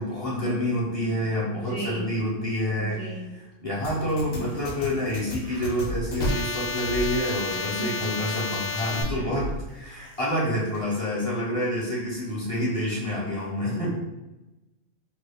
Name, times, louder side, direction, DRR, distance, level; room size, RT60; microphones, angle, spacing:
voice 1, 0.0-13.9, equal, 30° left, -7 dB, 0.8 m, -28 dB
voice 2, 1.5-2.1 2.8-3.3 7.5-7.9 8.3-8.4 9.9-10.1 13.7-13.9, right 1 dB, 40° right, -5 dB, 0.4 m, -36 dB
sound 1, 3.8-9.0, left 3 dB, 70° left, 1.0 m, -31 dB
sound 2, 4.4-10.8, right 1 dB, 80° right, 1.0 m, -40 dB
3.0 x 2.4 x 3.4 m, 1.1 s
omnidirectional pair, 1.4 m